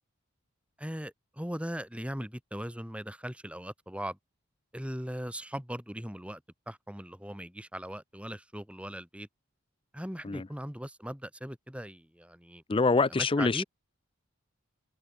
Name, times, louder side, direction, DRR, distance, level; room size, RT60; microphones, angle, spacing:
voice 1, 0.8-4.2 4.7-6.4 6.7-9.3 9.9-12.6 13.1-13.6, equal, 5° right, 3.3 m, -39 dB
voice 2, 12.7-13.6, left 3 dB, 25° left, 0.5 m, -25 dB
head